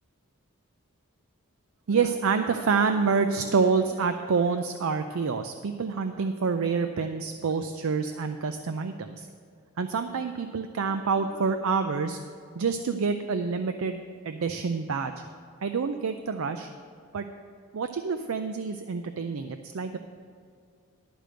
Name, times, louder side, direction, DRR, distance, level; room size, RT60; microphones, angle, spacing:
voice 1, 1.9-9.3 9.8-12.2 12.6-15.2 15.6-16.7 17.1-17.3 17.7-20.0, right 5 dB, 70° right, 8 dB, 0.4 m, -27 dB
11.5 x 5.1 x 7.6 m, 2.2 s
head